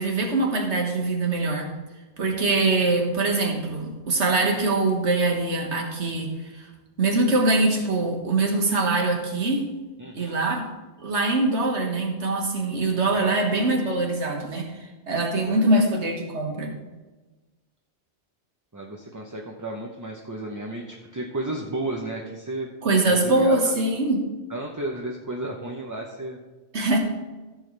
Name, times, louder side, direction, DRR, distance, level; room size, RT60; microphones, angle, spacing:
voice 1, 0.0-1.7 2.2-6.7 7.0-9.7 10.2-10.7 11.0-14.7 15.1-16.8 22.8-24.3 26.7-27.0, right 2 dB, 75° right, 1 dB, 1.9 m, -23 dB
voice 2, 10.0-10.4 13.1-13.3 15.5-15.8 18.7-22.7 23.0-23.7 24.5-26.4, right 2 dB, 20° right, -1 dB, 0.7 m, -33 dB
14.5 x 7.0 x 3.3 m, 1.2 s
omnidirectional pair, 1.2 m